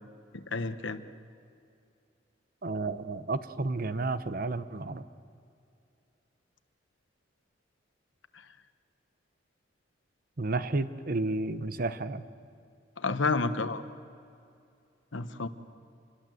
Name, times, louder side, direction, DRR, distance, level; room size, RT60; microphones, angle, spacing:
voice 1, 0.3-1.0 13.0-13.8 15.1-15.5, left 3 dB, 80° left, 11 dB, 1.1 m, -30 dB
voice 2, 2.6-5.0 10.4-12.2, right 2 dB, 50° right, 13 dB, 0.8 m, -31 dB
27.0 x 21.5 x 7.8 m, 2.5 s
head